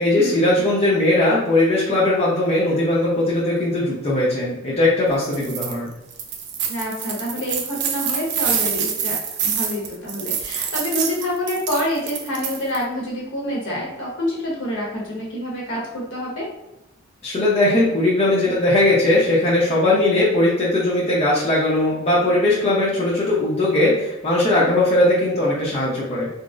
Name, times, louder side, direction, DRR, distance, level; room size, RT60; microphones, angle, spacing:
voice 1, 0.0-5.9 17.2-26.3, left 1 dB, 30° left, -7 dB, 0.6 m, -19 dB
sound 1, 5.2-5.7 6.1-12.8, right 7 dB, 55° right, 0.4 m, -26 dB
voice 2, 6.7-9.2 9.4-16.5 24.6-24.7, equal, 65° left, -4 dB, 1.0 m, -27 dB
3.8 x 2.0 x 2.4 m, 0.92 s
head